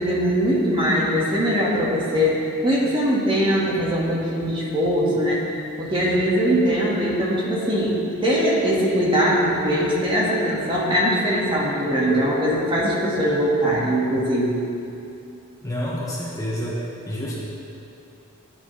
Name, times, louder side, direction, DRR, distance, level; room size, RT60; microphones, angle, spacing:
voice 1, 0.0-7.9 8.2-14.6, equal, 25° right, -5 dB, 1.9 m, -21 dB
voice 2, 15.6-16.8 17.0-17.4, equal, 15° left, -6 dB, 1.7 m, -28 dB
16.5 x 9.5 x 3.4 m, 2.7 s
head